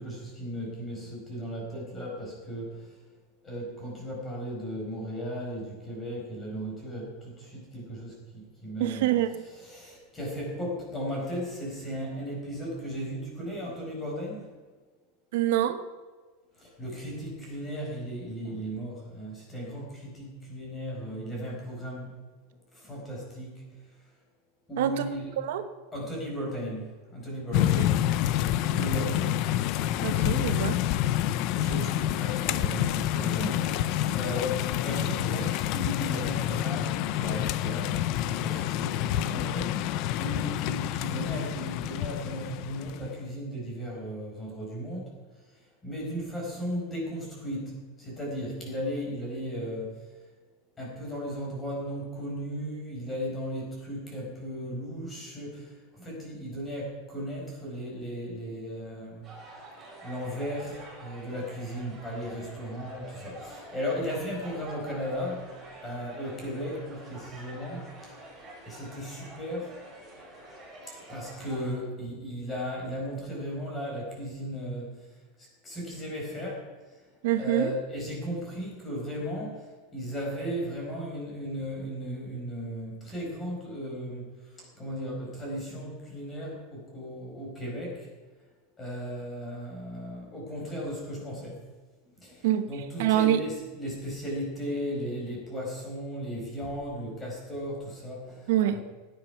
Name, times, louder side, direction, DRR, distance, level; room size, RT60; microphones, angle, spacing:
voice 1, 0.0-2.8 3.4-9.1 9.4-14.5 16.6-22.1 22.7-23.6 24.7-25.3 25.9-27.9 28.7-29.4 31.5-39.9 40.2-45.1 45.8-50.0 50.8-59.2 60.0-65.4 65.8-68.1 68.6-69.7 71.1-75.0 75.6-76.6 77.4-79.6 79.9-84.3 84.6-88.1 88.8-91.6 92.2-98.8, equal, 15° left, -2 dB, 4.8 m, -36 dB
voice 2, 8.8-9.3 15.3-15.8 24.8-25.0 25.4-25.6 27.8-27.9 30.0-30.8 77.2-77.7 92.4-92.7 93.0-93.4 98.5-98.8, right 12 dB, 65° right, 10 dB, 1.0 m, -25 dB
sound 1, 27.5-43.1, left 12 dB, 40° left, 0.5 m, -28 dB
sound 2, 59.2-71.8, right 1 dB, 15° right, 4.8 m, -47 dB
16.5 x 10.5 x 5.8 m, 1.4 s
supercardioid pair, 175°, 0 cm